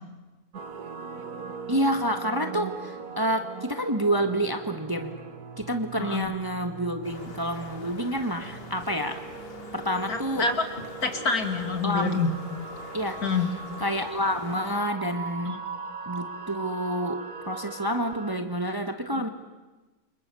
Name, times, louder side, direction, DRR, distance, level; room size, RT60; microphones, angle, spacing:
sound 1, 0.5-18.4, right 5 dB, 65° right, 2.0 m, -40 dB
voice 1, 1.7-5.2 5.6-9.2 9.7-10.5 11.8-12.2 12.9-13.2 13.8-15.6 16.0-19.3, equal, 15° right, 6 dB, 1.4 m, -28 dB
sound 2, 7.0-14.8, left 3 dB, 35° left, 2.1 m, -44 dB
voice 2, 10.1-10.7 11.0-12.3 13.2-13.5 15.5-15.6 19.1-19.2, left 4 dB, 65° left, 6 dB, 2.8 m, -27 dB
29.5 x 26.0 x 7.0 m, 1.2 s
omnidirectional pair, 1.7 m